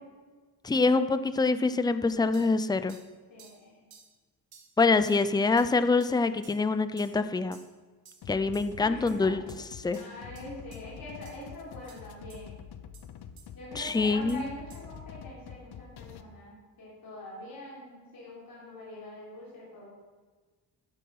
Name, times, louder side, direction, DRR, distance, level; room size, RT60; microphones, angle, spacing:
voice 1, 0.6-3.0 4.8-7.6 8.3-9.4 9.8-10.0 13.8-14.5, left 3 dB, 10° left, 11 dB, 0.5 m, -25 dB
sound 1, 2.3-2.5 2.9-3.1 3.4-3.6 3.9-4.1 4.5-4.7 5.0-5.2 5.6-5.7 6.0-6.1 6.4-6.6 7.0-7.2 7.5-7.7 8.0-8.2 8.5-8.7 9.1-9.2 9.5-9.6 9.9-10.0 10.3-10.4 10.7-10.8 11.2-11.3 11.9-12.0 12.3-12.4 12.9-13.0 13.4-13.5 13.9-14.0 14.3-14.4 14.7-14.8, right 6 dB, 65° right, 2.3 m, -54 dB
voice 2, 3.3-3.9 8.8-9.3 9.9-12.5 13.5-19.9, left 1 dB, 60° left, -7 dB, 4.3 m, -44 dB
sound 2, 8.2-16.2, left 8 dB, 85° left, 0.9 m, -46 dB
12.5 x 11.0 x 5.6 m, 1.4 s
wide cardioid pair, 135°, 39 cm